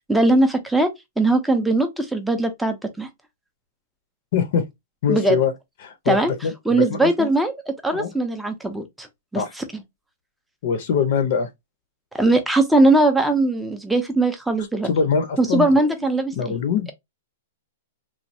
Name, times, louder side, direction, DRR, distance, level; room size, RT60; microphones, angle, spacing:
voice 1, 0.1-0.9 1.2-3.1 5.1-5.4 6.1-6.3 6.7-7.5 7.8-9.1 9.3-9.8 12.1-14.9 15.4-16.6, right 2 dB, 5° right, 0.5 m, -20 dB
voice 2, 4.3-4.6 5.0-5.5 5.8-6.2 6.4-7.3 7.9-8.1 9.3-9.5 10.6-11.5 14.8-15.8 16.4-16.9, left 7 dB, 50° left, 0.6 m, -23 dB
3.1 x 2.3 x 2.6 m
hypercardioid pair, 160°, 0 cm